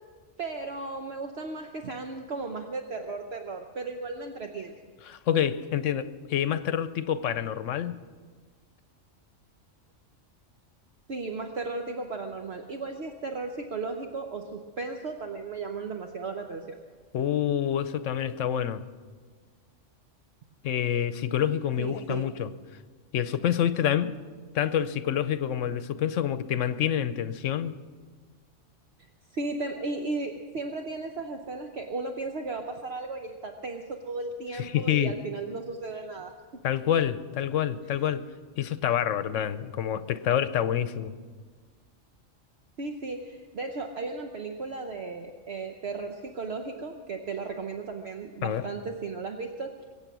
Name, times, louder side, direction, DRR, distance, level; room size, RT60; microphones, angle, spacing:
voice 1, 0.4-4.8 11.1-16.8 21.8-22.3 29.3-36.6 42.8-49.7, right 3 dB, 60° right, 1.1 m, -35 dB
voice 2, 5.1-8.0 17.1-18.8 20.6-22.5 23.1-24.2 24.5-27.7 34.5-35.1 36.6-38.3 38.6-41.1 48.4-48.6, left 10 dB, 75° left, 1.1 m, -27 dB
23.0 x 8.7 x 6.1 m
omnidirectional pair, 1.3 m